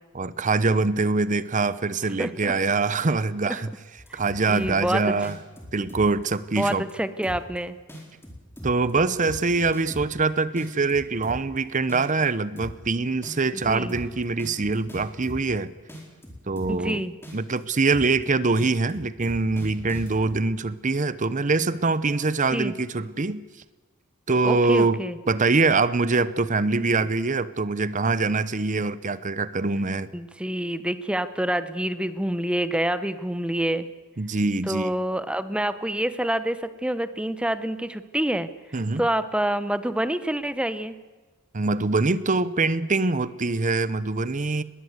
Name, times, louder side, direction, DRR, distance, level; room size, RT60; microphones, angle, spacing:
voice 1, 0.1-3.7 4.1-5.4 5.7-6.8 8.6-15.7 16.5-17.0 17.3-23.4 24.3-30.1 34.2-34.9 38.7-39.0 41.5-44.6, right 3 dB, 35° right, 16 dB, 0.8 m, -24 dB
voice 2, 2.2-2.5 4.1-4.2 4.5-5.2 6.6-7.8 13.5-14.0 16.7-17.1 22.5-22.7 24.4-25.2 30.1-33.9 34.7-38.5 39.0-41.0, right 1 dB, 5° right, 12 dB, 0.8 m, -27 dB
sound 1, 4.0-4.9 5.2-6.2 6.6-6.9 7.2-7.6 7.9-10.2 10.6-11.6 11.9-12.2 12.6-12.9 13.2-15.6 15.9-16.9 17.2-17.6 17.9-18.2 18.6-20.4, equal, 10° left, 4.5 m, -39 dB
20.5 x 18.0 x 8.1 m, 1.3 s
head